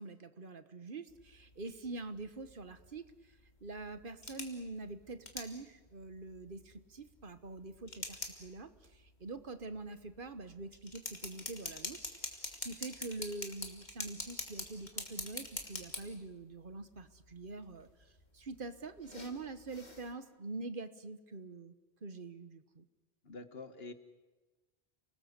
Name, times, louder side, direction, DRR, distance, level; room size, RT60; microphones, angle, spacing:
voice 1, 0.0-3.0 3.6-8.7 9.2-12.0 12.6-17.9 18.3-21.7 22.0-22.8, right 3 dB, 55° right, 11 dB, 1.4 m, -45 dB
sound 1, 1.1-20.1, left 2 dB, 45° left, 2.9 m, -47 dB
voice 2, 23.2-23.9, left 3 dB, 70° left, 10 dB, 1.7 m, -46 dB
29.0 x 19.5 x 8.1 m, 1.2 s
omnidirectional pair, 1.1 m